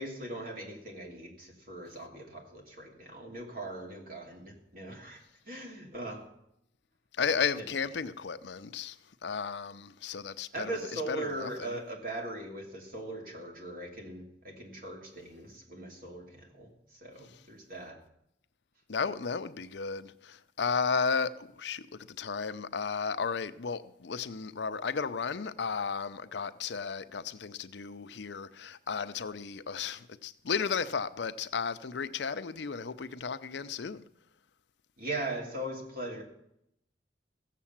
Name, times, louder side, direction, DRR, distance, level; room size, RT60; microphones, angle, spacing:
voice 1, 0.0-5.2 5.5-6.3 7.5-7.7 10.5-18.0 35.0-36.2, right 1 dB, 50° right, 2.8 m, -40 dB
voice 2, 7.2-9.0 9.2-11.8 18.9-34.0, left 5 dB, 70° left, 0.6 m, -34 dB
15.0 x 7.5 x 7.3 m
head